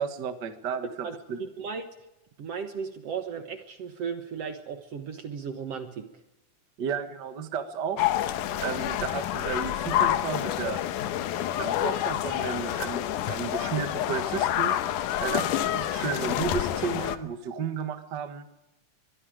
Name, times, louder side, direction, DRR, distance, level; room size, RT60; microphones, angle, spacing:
voice 1, 0.0-1.4 6.8-8.1 8.6-10.8 11.6-14.8 15.2-18.5, right 6 dB, 40° right, 8 dB, 1.8 m, -33 dB
voice 2, 1.0-1.9 2.4-6.2, right 6 dB, 60° right, 7 dB, 2.1 m, -36 dB
sound 1, 8.0-17.2, left 12 dB, 85° left, 2.5 m, -28 dB
23.5 x 23.5 x 5.1 m, 0.96 s
omnidirectional pair, 3.6 m